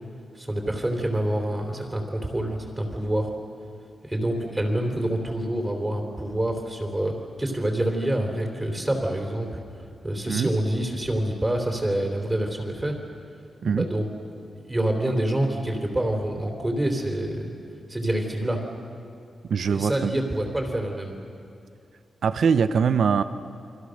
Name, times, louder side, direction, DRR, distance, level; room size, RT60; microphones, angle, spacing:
voice 1, 0.4-3.3 4.1-9.6 10.0-12.9 13.6-14.1 14.3-17.6 17.9-18.6 19.7-21.2, right 1 dB, 15° right, 3 dB, 3.5 m, -27 dB
voice 2, 19.5-20.1 22.2-23.2, right 6 dB, 70° right, 12 dB, 0.8 m, -22 dB
29.5 x 24.0 x 6.6 m, 2.4 s
wide cardioid pair, 150°, 0 cm